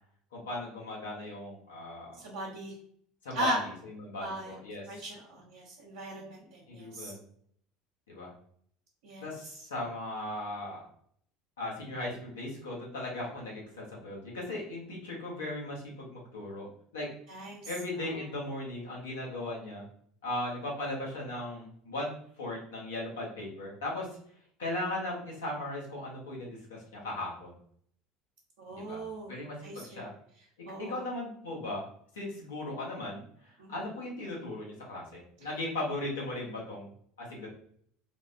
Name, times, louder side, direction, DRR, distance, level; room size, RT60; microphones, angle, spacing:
voice 1, 0.3-2.2 3.2-3.5 4.0-4.8 6.7-7.2 8.1-8.3 9.2-10.8 11.6-17.1 17.7-19.8 20.2-24.1 24.6-27.5 28.7-29.0 29.3-30.1 30.8-31.8 32.1-36.9 37.2-37.5, left 1 dB, 85° left, -3 dB, 1.0 m, -37 dB
voice 2, 2.2-2.7 3.3-3.6 4.2-4.6 4.9-7.1 9.0-9.3 17.3-17.7 18.0-18.2 28.6-30.1 30.7-31.0 33.6-33.8, right 1 dB, 75° right, -5 dB, 0.7 m, -38 dB
3.3 x 2.1 x 2.5 m, 0.63 s
hypercardioid pair, 75°, 0 cm